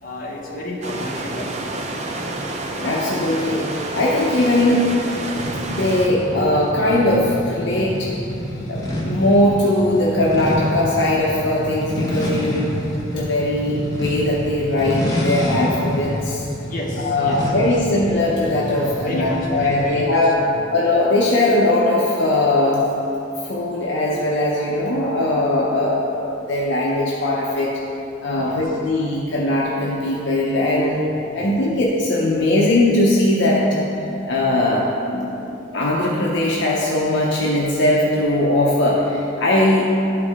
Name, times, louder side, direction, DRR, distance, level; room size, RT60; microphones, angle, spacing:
voice 1, 0.0-1.9 16.6-17.8 18.7-20.7 28.3-28.7 30.8-31.7, left 1 dB, 45° left, -4 dB, 1.2 m, -32 dB
sound 1, 0.8-6.1, right 2 dB, 35° right, 0.5 m, -28 dB
voice 2, 2.8-4.9 5.7-8.1 8.7-12.7 13.1-16.4 17.0-20.4 20.7-22.8 23.4-27.7 28.2-31.0 31.3-33.9 34.3-35.4 35.7-40.0, left 1 dB, 65° left, -4 dB, 0.8 m, -20 dB
sound 2, 5.4-20.0, equal, 20° left, 0.9 m, -28 dB
12.0 x 4.8 x 3.6 m, 2.9 s
head